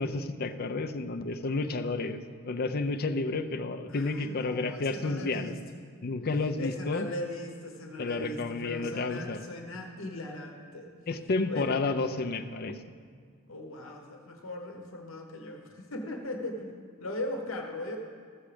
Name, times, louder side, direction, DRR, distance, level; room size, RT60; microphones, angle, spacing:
voice 1, 0.0-5.5 6.0-7.1 8.0-9.4 11.1-12.8, left 3 dB, 45° left, 9 dB, 0.5 m, -31 dB
voice 2, 3.9-5.6 6.6-10.9 11.5-11.8 13.5-18.0, left 2 dB, 60° left, 3 dB, 1.0 m, -39 dB
14.0 x 7.2 x 5.0 m, 2.1 s
head